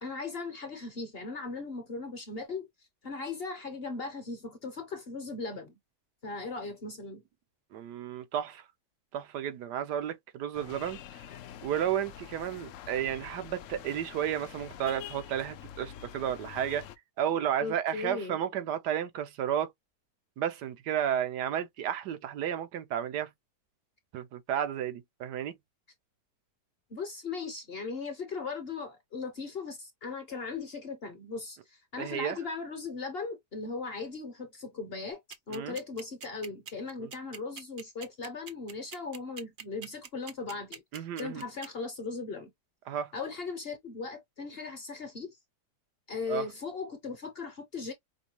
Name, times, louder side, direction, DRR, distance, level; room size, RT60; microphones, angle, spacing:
voice 1, 0.0-2.7 3.0-5.7 6.2-7.2 17.6-18.4 26.9-35.2 35.5-42.5 43.1-45.3 46.1-47.9, left 4 dB, 45° left, 0.9 m, -38 dB
voice 2, 7.7-8.6 9.1-11.0 11.6-16.9 17.2-19.7 20.4-23.3 24.1-25.5 32.0-32.4 35.5-35.8 37.0-37.1 40.9-41.4 42.9-43.1 46.3-46.5, right 9 dB, 80° right, 1.3 m, -32 dB
sound 1, 10.5-17.0, left 10 dB, 70° left, 0.7 m, -46 dB
sound 2, 35.3-41.7, right 7 dB, 60° right, 0.5 m, -43 dB
5.4 x 2.2 x 2.9 m
omnidirectional pair, 1.8 m